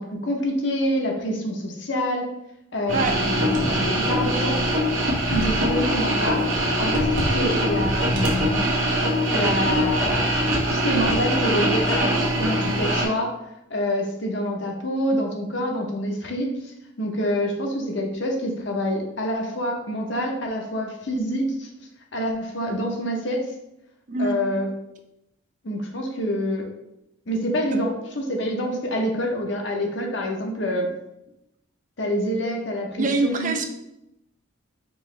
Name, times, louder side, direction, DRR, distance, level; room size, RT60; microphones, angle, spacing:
voice 1, 0.0-2.3 2.7-4.6 5.3-8.7 9.3-10.4 10.7-13.3 13.7-21.7 22.1-23.5 24.2-24.7 25.6-26.7 27.3-30.9 32.0-33.5, equal, 60° left, 1 dB, 0.8 m, -27 dB
sound 1, 2.9-13.1, equal, 70° right, 1.0 m, -22 dB
voice 2, 33.0-33.6, right 3 dB, 40° right, 5 dB, 0.4 m, -24 dB
4.6 x 3.0 x 3.2 m, 0.85 s
head